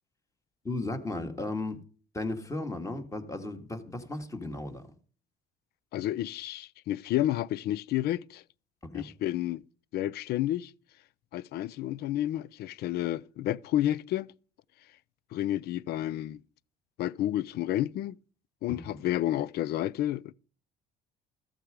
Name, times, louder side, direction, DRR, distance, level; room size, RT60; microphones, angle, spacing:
voice 1, 0.6-1.8 2.1-4.9 8.9-9.1 18.7-19.0, left 2 dB, 20° left, 2.0 m, -35 dB
voice 2, 5.9-8.4 8.9-9.6 9.9-10.7 11.3-14.3 15.3-16.4 17.0-18.2 18.6-20.3, left 13 dB, 70° left, 0.5 m, -30 dB
14.0 x 7.8 x 5.0 m
cardioid pair, 110°, 17 cm